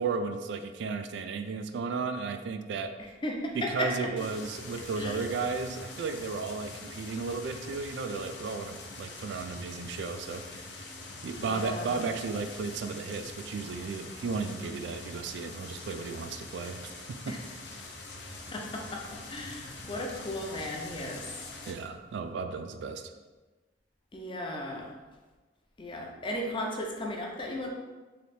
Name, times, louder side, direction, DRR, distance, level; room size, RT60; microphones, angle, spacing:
voice 1, 0.0-3.0 3.5-10.7 11.2-17.3 21.7-23.0, right 4 dB, 75° right, 7 dB, 0.3 m, -34 dB
voice 2, 3.2-4.1 5.0-5.2 11.4-12.0 17.3-17.4 18.5-21.2 24.1-24.9 25.8-27.7, left 1 dB, 30° left, 0 dB, 0.6 m, -35 dB
sound 1, 4.2-21.7, left 2 dB, 70° left, 0.6 m, -44 dB
3.3 x 2.8 x 4.2 m, 1.2 s
head